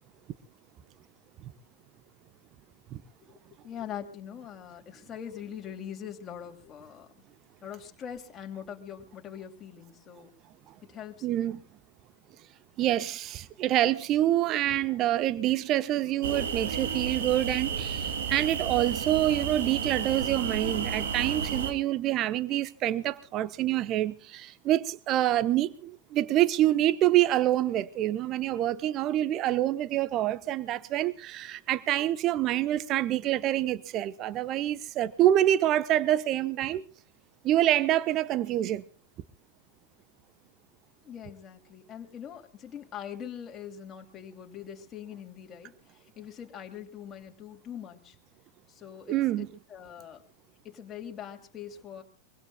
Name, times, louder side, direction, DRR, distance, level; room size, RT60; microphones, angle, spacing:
voice 1, 3.6-7.1 7.6-10.3 10.8-11.4 41.0-45.7 46.2-48.2 48.7-50.2 50.6-52.0, left 9 dB, 25° left, 2.8 m, -42 dB
voice 2, 11.2-11.6 12.8-36.9 37.4-38.8 49.1-49.5, right 13 dB, 35° right, 1.0 m, -26 dB
sound 1, 16.2-21.7, right 6 dB, 60° right, 2.6 m, -32 dB
24.0 x 23.5 x 2.3 m
figure-of-eight pair, 90°, 0 cm